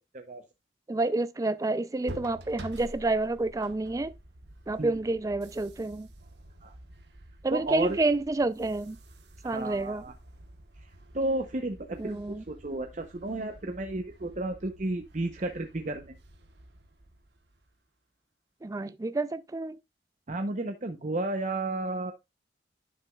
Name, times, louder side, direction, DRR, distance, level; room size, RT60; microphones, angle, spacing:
voice 1, 0.9-4.1 4.7-6.1 7.4-9.0 9.4-10.0 12.0-12.4 18.6-19.8, right 2 dB, 20° right, 0.3 m, -29 dB
sound 1, 2.0-17.8, right 1 dB, 65° right, 1.1 m, -49 dB
voice 2, 7.5-8.0 9.5-10.1 11.1-16.2 20.3-22.1, right 2 dB, 40° right, 0.7 m, -32 dB
11.0 x 6.1 x 2.3 m
head